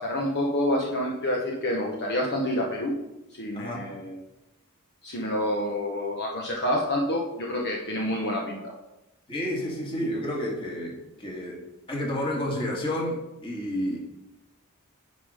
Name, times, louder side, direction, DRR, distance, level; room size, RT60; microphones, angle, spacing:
voice 1, 0.0-2.9 3.3-4.1 5.0-8.7, left 1 dB, 50° left, -2 dB, 1.2 m, -28 dB
voice 2, 9.3-11.6 11.9-14.0, left 1 dB, 25° left, -3 dB, 2.1 m, -30 dB
9.6 x 5.2 x 5.0 m, 0.94 s
head